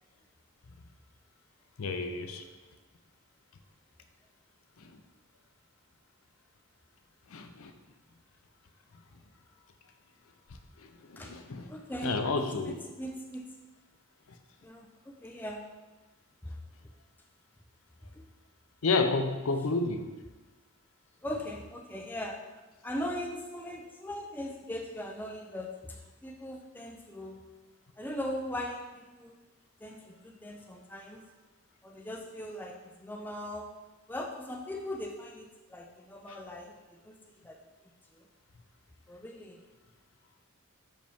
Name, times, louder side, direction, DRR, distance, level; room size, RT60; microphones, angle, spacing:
voice 1, 1.8-2.4 4.8-4.9 7.3-7.7 10.8-11.7 12.0-12.8 18.8-20.1 36.3-36.5, left 3 dB, 70° left, 6 dB, 0.5 m, -31 dB
voice 2, 11.7-13.4 14.6-15.6 16.4-16.6 18.1-18.3 21.2-22.4 22.8-27.4 28.0-29.4 29.8-31.2 31.8-33.7 34.1-37.1 37.4-37.6 38.2-38.3 39.1-39.6, left 1 dB, 10° left, 1 dB, 0.3 m, -40 dB
5.8 x 5.0 x 3.5 m, 1.2 s
head